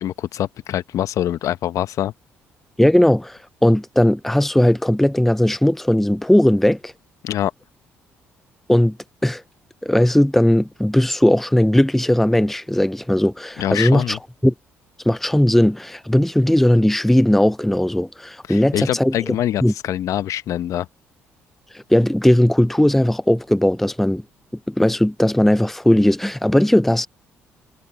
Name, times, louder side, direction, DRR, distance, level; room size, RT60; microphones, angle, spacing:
voice 1, 0.0-2.1 7.2-7.5 13.6-14.2 18.5-20.9, left 12 dB, 65° left, 1.1 m, -24 dB
voice 2, 2.8-6.9 8.7-9.0 9.2-9.4 9.8-14.5 15.1-19.3 19.6-19.7 21.7-24.2 24.7-27.1, left 1 dB, 5° left, 0.6 m, -17 dB
hypercardioid pair, 50°, 6 cm